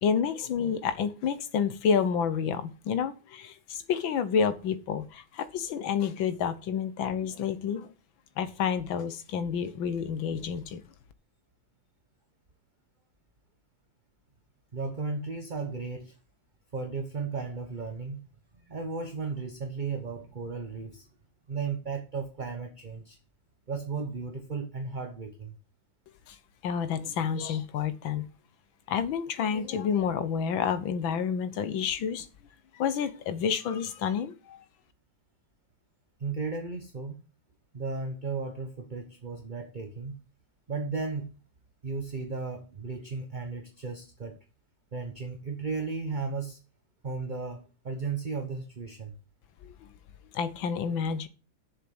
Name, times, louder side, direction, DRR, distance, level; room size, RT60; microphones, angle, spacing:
voice 1, 0.0-7.9 8.4-10.8 26.3-26.4 26.6-28.3 28.9-32.3 32.7-34.6 49.6-49.9 50.3-51.3, left 7 dB, 80° left, 13 dB, 1.8 m, -29 dB
voice 2, 14.7-16.2 16.7-18.2 18.5-21.1 21.5-23.2 23.7-25.5 36.2-37.2 37.7-40.2 40.7-41.3 41.8-44.4 44.9-46.6 47.0-49.2, right 4 dB, 35° right, 5 dB, 0.9 m, -35 dB
7.4 x 7.2 x 7.8 m, 0.35 s
omnidirectional pair, 2.1 m